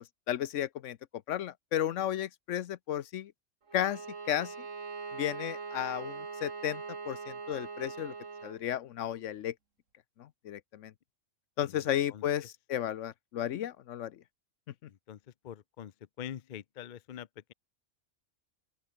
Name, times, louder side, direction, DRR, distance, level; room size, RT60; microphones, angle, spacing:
voice 1, 0.3-1.0 1.3-3.3 3.7-4.0 4.3-4.5 5.1-8.1 8.4-9.5 10.2-10.9 11.6-14.1, left 11 dB, 75° left, 1.0 m, -33 dB
Bowed string instrument, 3.7-8.6, right 4 dB, 75° right, 2.5 m, -42 dB
voice 2, 14.9-15.9 16.2-17.5, left 10 dB, 50° left, 0.6 m, -45 dB
open air
omnidirectional pair, 1.3 m